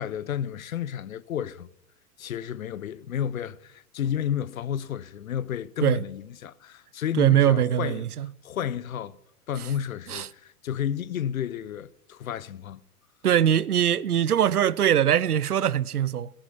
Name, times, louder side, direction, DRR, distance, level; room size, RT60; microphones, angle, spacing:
voice 1, 0.0-1.7 2.2-8.1 8.4-9.2 9.5-12.8, left 9 dB, 60° left, 0.9 m, -31 dB
voice 2, 7.2-8.3 10.1-10.3 13.2-16.3, right 10 dB, 70° right, 0.8 m, -22 dB
18.0 x 14.0 x 5.7 m
figure-of-eight pair, 100°, 47 cm